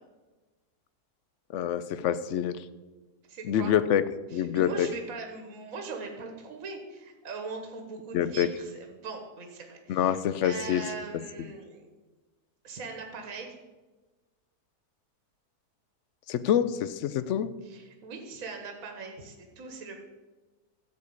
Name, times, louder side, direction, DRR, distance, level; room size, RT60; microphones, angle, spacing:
voice 1, 1.5-2.6 3.4-4.0 4.3-4.9 8.1-8.5 9.9-10.8 16.3-17.5, left 9 dB, 65° left, 14 dB, 0.7 m, -26 dB
voice 2, 3.3-3.8 4.3-11.8 12.6-13.6 17.6-20.0, right 4 dB, 60° right, 3 dB, 1.6 m, -41 dB
14.0 x 4.8 x 8.4 m, 1.2 s
omnidirectional pair, 1.7 m